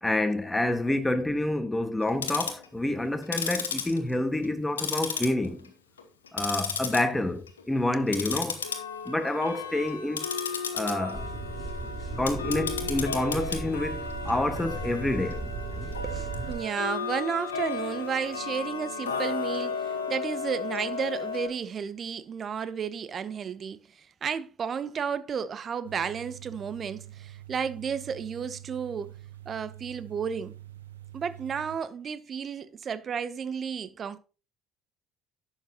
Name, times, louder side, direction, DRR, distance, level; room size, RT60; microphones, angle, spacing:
voice 1, 0.0-5.7 6.3-8.6 9.1-10.3 10.7-11.3 12.2-15.5, left 1 dB, 10° left, 1.6 m, -28 dB
Tick-tock, 2.0-2.7 3.2-4.5 4.8-5.7 6.0-7.0 7.4-7.6 8.1-21.5, left 5 dB, 80° left, 1.1 m, -34 dB
sound 1, 11.1-16.6, right 2 dB, 10° right, 4.9 m, -36 dB
voice 2, 16.0-29.2 29.5-30.6 31.1-34.2, right 6 dB, 40° right, 0.9 m, -33 dB
sound 2, 25.8-31.8, right 13 dB, 80° right, 0.7 m, -46 dB
11.0 x 7.7 x 2.9 m
figure-of-eight pair, 55°, 0 cm